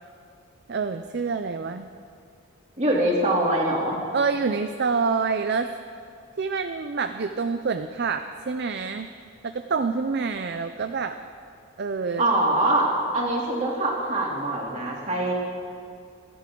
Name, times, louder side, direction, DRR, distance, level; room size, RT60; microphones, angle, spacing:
voice 1, 0.7-1.9 3.1-3.2 4.1-5.7 6.4-9.1 9.4-11.2 11.8-12.2, right 5 dB, 50° right, 8 dB, 0.5 m, -27 dB
voice 2, 2.8-4.0 12.2-15.3, right 1 dB, 35° right, -3 dB, 2.9 m, -23 dB
29.5 x 11.0 x 3.8 m, 2.3 s
head